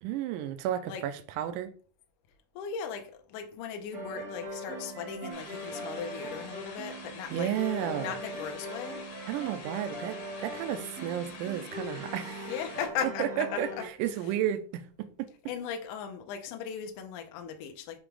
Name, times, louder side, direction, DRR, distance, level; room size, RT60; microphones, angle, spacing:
voice 1, 0.0-1.7 7.3-8.2 9.3-12.5 13.2-13.7 14.0-15.3, right 11 dB, 85° right, 1.8 m, -32 dB
voice 2, 2.6-7.5 7.9-9.0 12.4-13.9 15.5-18.0, left 7 dB, 85° left, 1.8 m, -38 dB
sound 1, 3.9-13.9, equal, 55° right, 1.0 m, -40 dB
sound 2, 5.3-12.9, left 4 dB, 65° left, 1.6 m, -47 dB
6.9 x 2.9 x 4.9 m
omnidirectional pair, 4.4 m